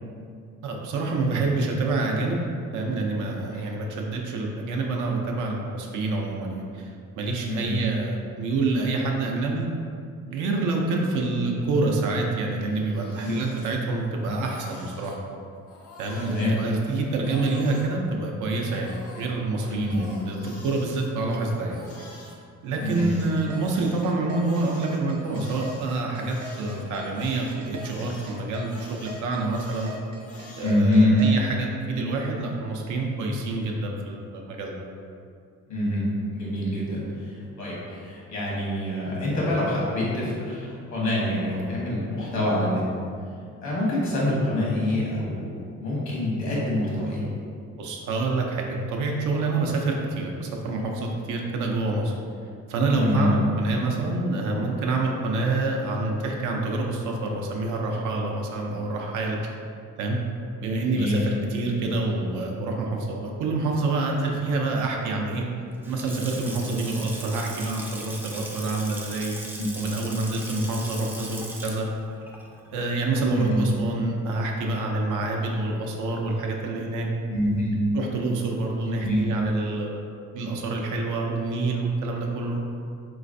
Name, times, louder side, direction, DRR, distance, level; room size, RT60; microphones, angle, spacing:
voice 1, 0.6-2.4 2.7-9.7 10.3-15.1 16.0-22.1 22.6-29.9 30.6-34.7 47.8-52.1 52.7-59.5 60.0-60.2 60.6-65.5 65.9-69.4 69.7-71.9 72.7-77.1 77.9-80.0 80.3-82.6, right 3 dB, 80° right, 0 dB, 0.5 m, -27 dB
Crying sobbing, 12.6-14.1 14.3-15.2 15.7-17.9 18.5-22.3 22.7-30.8, left 1 dB, 50° left, 0.7 m, -47 dB
voice 2, 16.2-16.6 19.7-20.0 22.8-23.1 30.6-31.2 35.7-36.0 36.3-42.8 43.6-47.2 52.9-53.3 60.9-61.2 61.6-61.7 69.6-69.7 73.3-73.6 77.3-77.8 79.0-79.2, left 1 dB, 70° left, -6 dB, 1.2 m, -26 dB
sound 1, 23.0-31.3, left 2 dB, 60° right, 0.9 m, -40 dB
Water tap faucet / Sink (filling or washing) / Splash splatter, 65.7-73.8, right 1 dB, 5° right, 0.3 m, -39 dB
3.2 x 3.1 x 2.5 m, 2.4 s
cardioid pair, 90°, 30 cm